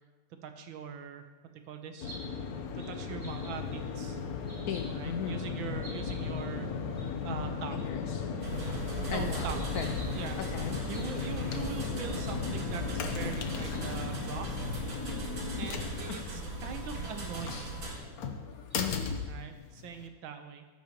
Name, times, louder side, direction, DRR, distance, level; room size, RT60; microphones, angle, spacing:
voice 1, 0.4-2.2 2.7-4.2 4.9-7.9 8.6-9.8 10.1-10.4 10.9-14.8 15.5-17.9 19.3-20.7, right 7 dB, 75° right, 7 dB, 1.6 m, -42 dB
sound 1, 2.0-20.1, left 6 dB, 60° left, 1.1 m, -36 dB
sound 2, 2.0-2.2 2.8-2.9 3.2-3.8 4.4-4.8 5.3-5.5 5.8-6.4 7.0-7.1 7.3-7.4 7.8-7.9 8.4-8.7 9.4-10.3 10.9-11.1 11.6-11.7 12.1-12.3 13.0-13.3 13.7-13.8 14.1-14.2 14.9-15.0 15.6-15.9 16.8-16.9 17.9-18.0 18.7-18.8, right 1 dB, 15° right, 2.4 m, -50 dB
voice 2, 4.7-5.4 7.7-8.3 9.1-9.5 9.7-9.9 10.4-10.7 15.6-16.2 17.5-17.6 18.8-19.1, left 8 dB, 75° left, 6 dB, 0.9 m, -37 dB
sound 3, 8.4-18.0, right 2 dB, 45° right, 2.0 m, -39 dB
13.0 x 10.5 x 3.0 m, 1.3 s
omnidirectional pair, 2.2 m